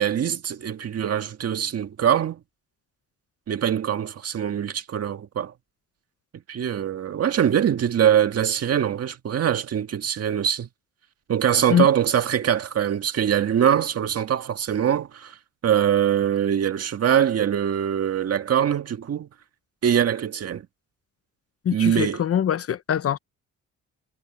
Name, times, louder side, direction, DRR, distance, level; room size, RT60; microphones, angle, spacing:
voice 1, 0.0-2.4 3.5-5.5 6.5-10.7 11.3-15.4 15.6-19.3 19.8-20.6 21.7-22.2, right 9 dB, 55° right, 1.8 m, -23 dB
voice 2, 21.6-23.2, left 9 dB, 50° left, 0.9 m, -23 dB
cardioid pair, 90°, 30 cm